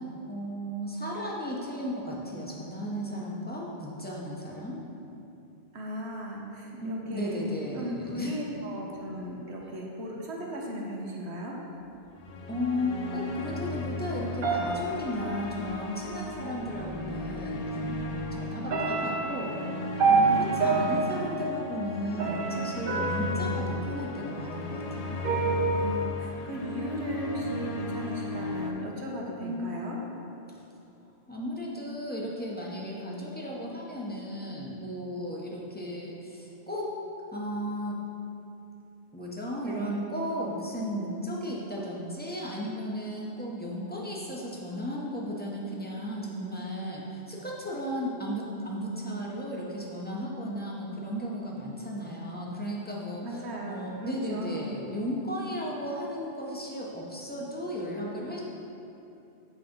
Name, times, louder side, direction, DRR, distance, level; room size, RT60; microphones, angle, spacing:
voice 1, 0.3-4.8 6.8-8.3 12.5-17.8 18.0-19.6 20.1-25.2 29.4-29.6 31.3-37.0 37.3-38.0 39.1-58.4, equal, 10° left, -4 dB, 0.9 m, -35 dB
voice 2, 5.7-7.5 7.7-11.5 20.1-20.8 25.7-30.0 39.6-40.0 53.2-54.7, equal, 75° right, -2 dB, 1.3 m, -37 dB
sound 1, 12.2-28.7, left 2 dB, 45° left, 0.5 m, -36 dB
sound 2, 14.4-15.9 17.0-17.1 17.6-18.2 18.7-24.6 25.2-26.0, right 4 dB, 60° right, 0.9 m, -28 dB
7.5 x 4.2 x 5.3 m, 2.8 s
omnidirectional pair, 1.1 m